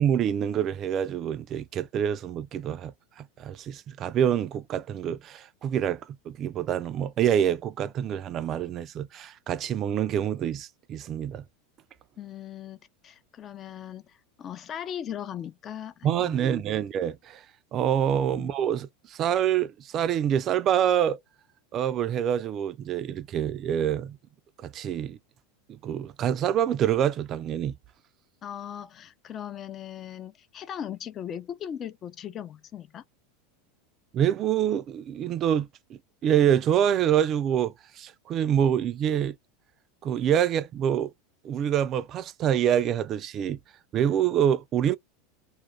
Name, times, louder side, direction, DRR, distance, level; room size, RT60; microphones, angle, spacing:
voice 1, 0.0-2.9 3.2-6.0 6.3-11.4 16.0-17.4 17.7-21.2 21.7-24.2 24.6-25.2 25.7-27.7 34.1-35.7 36.2-39.4 40.0-41.1 41.4-43.6 43.9-45.0, right 9 dB, 40° right, 0.4 m, -26 dB
voice 2, 12.2-16.6 18.3-18.5 28.4-33.0, left 9 dB, 35° left, 0.4 m, -39 dB
2.4 x 2.1 x 3.1 m
hypercardioid pair, 110°, 0 cm